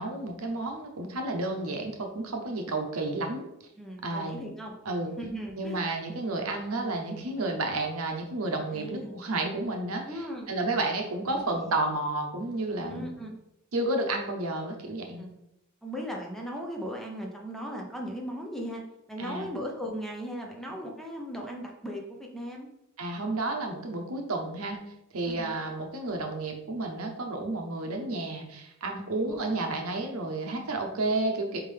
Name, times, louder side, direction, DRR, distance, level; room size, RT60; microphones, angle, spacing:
voice 1, 0.0-3.5 4.0-4.4 4.9-5.1 5.6-13.1 13.7-15.2 19.2-19.5 23.0-24.8 25.1-31.6, right 2 dB, 75° right, 3 dB, 0.8 m, -31 dB
voice 2, 3.8-4.8 5.2-5.9 8.7-9.1 10.1-10.5 11.2-11.7 12.9-13.4 15.0-15.3 15.8-18.8 19.1-22.7 25.2-25.6 29.2-29.8, equal, ahead, 0 dB, 0.7 m, -38 dB
4.4 x 3.6 x 3.3 m, 0.83 s
head